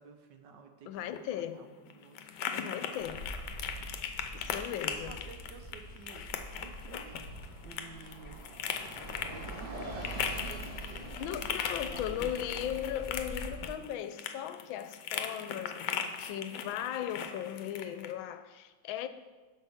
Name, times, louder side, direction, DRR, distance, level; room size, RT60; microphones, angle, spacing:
voice 1, 0.0-2.3 3.2-3.9 4.8-7.2 7.6-8.4 9.1-11.5 11.8-12.9, right 5 dB, 70° right, 6 dB, 1.4 m, -52 dB
voice 2, 0.9-1.6 2.5-3.2 4.3-5.1 11.2-19.1, left 10 dB, 90° left, 11 dB, 1.3 m, -37 dB
sound 1, 1.0-18.1, left 8 dB, 70° left, 1.2 m, -39 dB
Bus, 3.0-13.7, right 1 dB, 30° right, 1.1 m, -44 dB
9.9 x 6.8 x 3.6 m, 1.3 s
omnidirectional pair, 2.1 m